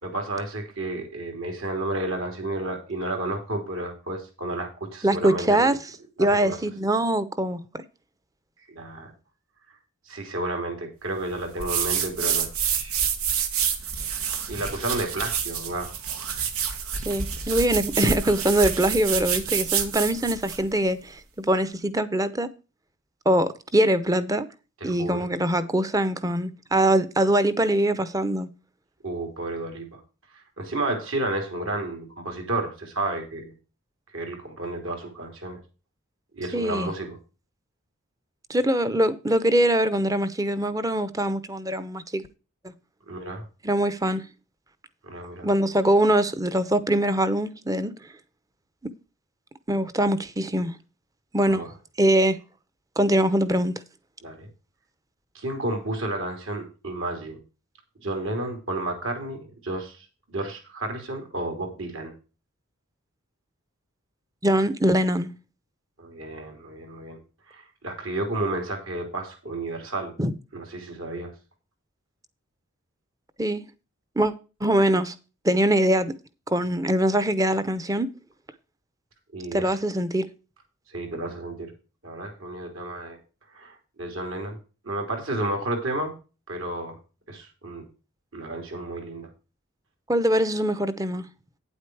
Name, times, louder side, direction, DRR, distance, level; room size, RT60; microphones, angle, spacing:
voice 1, 0.0-5.7 6.2-6.6 8.7-9.1 9.7-9.8 10.1-12.9 14.5-15.9 24.8-25.2 29.0-30.0 30.3-33.5 34.1-35.6 36.3-37.2 43.1-43.4 45.0-45.5 51.5-51.7 54.2-54.5 55.3-57.4 58.0-62.1 66.0-67.2 67.5-70.1 70.5-71.3 79.3-79.8 80.9-81.7 82.0-83.2 83.5-84.6 84.8-86.1 86.5-87.0 87.3-87.8 88.3-89.3, right 2 dB, 65° right, 3.4 m, -31 dB
voice 2, 5.0-5.8 6.2-7.8 17.0-22.5 23.3-24.5 24.8-28.5 36.5-36.9 38.5-42.3 42.6-42.7 43.6-44.2 45.4-47.9 49.7-50.7 51.3-51.6 52.0-52.4 53.0-53.7 64.4-65.3 70.2-70.3 73.4-73.6 74.2-74.3 74.6-75.1 75.4-76.1 76.5-78.1 79.5-80.3 90.1-91.2, right 1 dB, 15° right, 0.7 m, -23 dB
sound 1, 11.6-20.6, right 7 dB, 90° right, 1.8 m, -28 dB
9.3 x 8.1 x 4.8 m
head